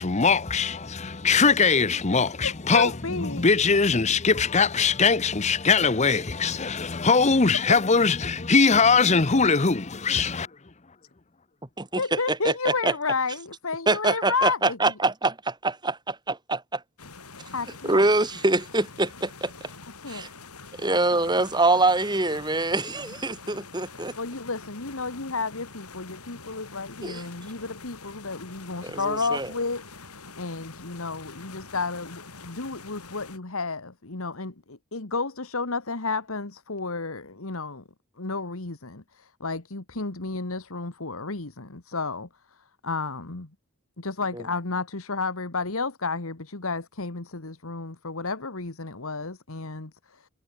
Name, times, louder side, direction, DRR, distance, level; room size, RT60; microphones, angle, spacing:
voice 1, 0.0-10.5, left 4 dB, 30° left, 0.8 m, -21 dB
voice 2, 2.4-3.5 11.9-14.8 17.5-18.1 20.0-20.2 20.9-21.0 24.2-37.8 38.2-43.5 44.0-50.3, left 4 dB, 70° left, 1.7 m, -32 dB
voice 3, 11.8-12.9 13.9-16.8 17.8-19.5 20.1-20.3 20.8-24.1 27.0-27.2 28.8-29.5 44.3-44.4, right 2 dB, 20° right, 3.0 m, -25 dB
sound 1, 17.0-33.4, left 4 dB, 90° left, 7.0 m, -45 dB
head